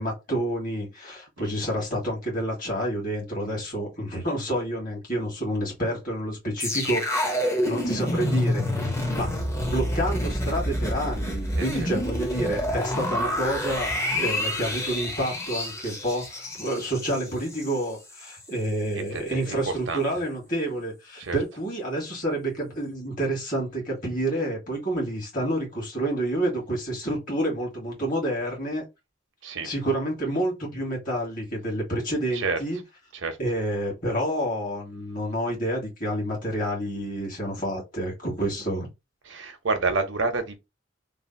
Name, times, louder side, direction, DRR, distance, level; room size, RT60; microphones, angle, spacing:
voice 1, 0.0-7.0 7.7-9.3 9.6-28.8 29.6-32.8 33.4-38.9, right 1 dB, 45° left, 1.7 m, -29 dB
sound 1, 6.6-17.8 18.1-18.3, left 1 dB, 15° left, 0.6 m, -28 dB
voice 2, 18.9-19.6 19.9-20.0 21.2-21.4 29.4-29.7 32.3-32.6 33.1-33.4 39.3-40.6, right 3 dB, 80° right, 0.8 m, -28 dB
3.3 x 2.4 x 2.6 m
head